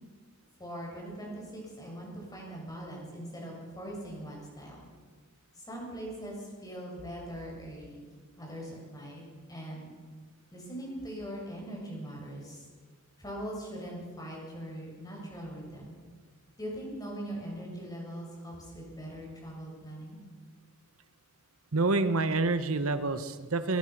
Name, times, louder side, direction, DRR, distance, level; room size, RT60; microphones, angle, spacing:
voice 1, 0.6-4.9 5.5-8.0 8.4-9.2 9.5-9.9 10.5-12.7 13.2-15.9 16.6-20.2, equal, 20° left, -2 dB, 7.1 m, -41 dB
voice 2, 21.7-23.8, right 3 dB, 90° right, 11 dB, 1.1 m, -27 dB
22.5 x 19.5 x 6.1 m, 1.5 s
head